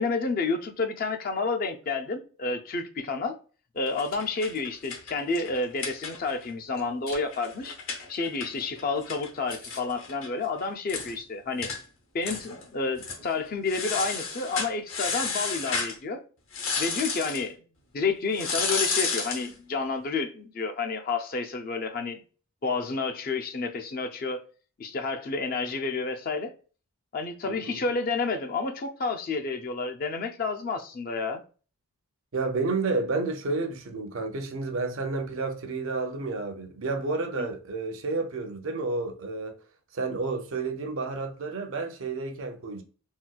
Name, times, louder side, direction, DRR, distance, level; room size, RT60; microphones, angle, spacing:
voice 1, 0.0-3.4 3.7-7.8 8.1-11.7 12.1-16.2 16.8-17.6 17.9-22.2 22.6-24.4 24.8-26.5 27.1-31.4 37.4-37.5, left 4 dB, 40° left, 0.4 m, -30 dB
Chewing mastication, 3.8-4.2 4.7-6.2 6.7-7.2 7.6-7.8 8.1-8.2 8.5-8.6 8.9-9.0 9.2-9.3 9.5-9.8, left 3 dB, 80° left, 1.4 m, -45 dB
sound 1, 3.9-6.5 6.8-6.9 7.1-10.3 10.6-10.7 10.9-11.1 11.6-11.8 12.2-12.6 13.0-13.2 13.7-16.0 16.5-17.5 18.3-19.5, left 4 dB, 60° left, 0.8 m, -32 dB
voice 2, 27.5-27.8 32.3-39.6 39.9-42.8, right 3 dB, 60° right, 0.5 m, -30 dB
3.9 x 2.2 x 2.2 m
head